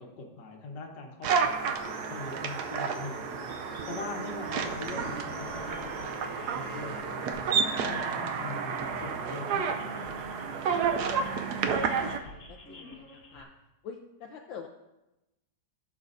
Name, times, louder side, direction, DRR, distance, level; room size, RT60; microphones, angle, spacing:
voice 1, 0.0-3.5 3.8-7.5 7.8-10.2, left 3 dB, 70° left, 2 dB, 1.8 m, -42 dB
sound 1, 1.2-12.2, right 6 dB, 70° right, 1.1 m, -31 dB
sound 2, 1.8-7.3, right 2 dB, 30° right, 3.7 m, -46 dB
sound 3, 4.8-13.4, left 1 dB, 45° left, 1.7 m, -47 dB
voice 2, 11.5-13.5 13.8-14.7, left 6 dB, 85° left, 2 dB, 1.4 m, -46 dB
16.0 x 7.1 x 2.6 m, 0.95 s
omnidirectional pair, 2.0 m